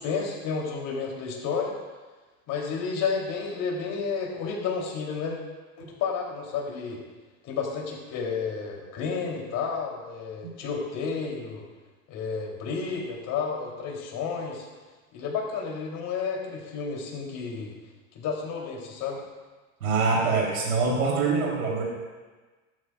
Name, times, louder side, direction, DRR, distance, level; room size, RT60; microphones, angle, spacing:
voice 1, 0.0-1.7 2.5-5.4 5.8-7.0 7.4-11.6 12.1-14.7 15.1-17.8 18.1-19.2, left 5 dB, 50° left, -1 dB, 3.7 m, -31 dB
voice 2, 19.8-21.8, right 4 dB, 85° right, -4 dB, 4.0 m, -24 dB
15.0 x 12.5 x 2.6 m, 1.3 s
hypercardioid pair, 90°, 41 cm